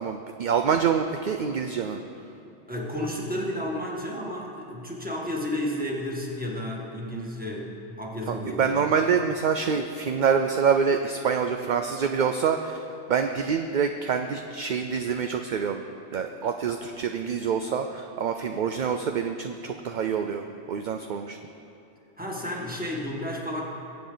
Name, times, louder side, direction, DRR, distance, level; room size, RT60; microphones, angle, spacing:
voice 1, 0.0-2.0 7.1-7.3 8.3-15.8 16.1-21.4, right 6 dB, 55° right, 6 dB, 0.6 m, -26 dB
voice 2, 2.7-8.9 22.2-23.6, left 1 dB, 10° right, -3 dB, 1.7 m, -32 dB
21.5 x 8.3 x 3.9 m, 2.9 s
omnidirectional pair, 1.2 m